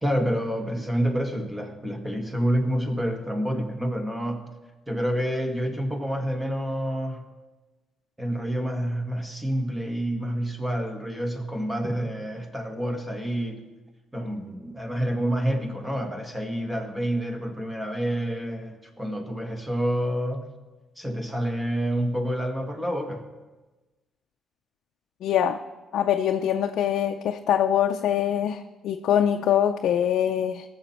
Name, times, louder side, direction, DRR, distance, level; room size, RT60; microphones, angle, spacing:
voice 1, 0.0-4.5 4.9-7.3 8.2-13.7 14.1-20.5 21.0-23.2, equal, 15° right, 4 dB, 1.7 m, -28 dB
voice 2, 25.2-25.6 25.9-30.6, left 10 dB, 75° left, 4 dB, 0.5 m, -23 dB
18.5 x 7.2 x 4.4 m, 1.2 s
cardioid pair, 90°, 0 cm